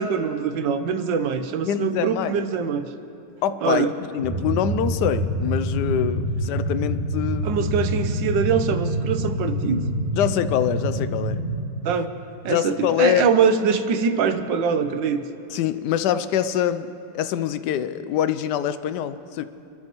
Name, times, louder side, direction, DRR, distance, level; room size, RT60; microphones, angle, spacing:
voice 1, 0.0-2.8 3.6-3.9 7.4-9.9 11.8-12.1 12.4-15.2, right 6 dB, 85° right, 9 dB, 1.5 m, -23 dB
voice 2, 1.6-2.4 3.4-7.6 10.2-11.4 12.5-13.3 15.5-19.4, left 10 dB, 75° left, 12 dB, 1.2 m, -24 dB
sound 1, 4.2-11.6, equal, 10° right, 3.5 m, -26 dB
28.0 x 13.0 x 3.1 m, 2.7 s
omnidirectional pair, 1.9 m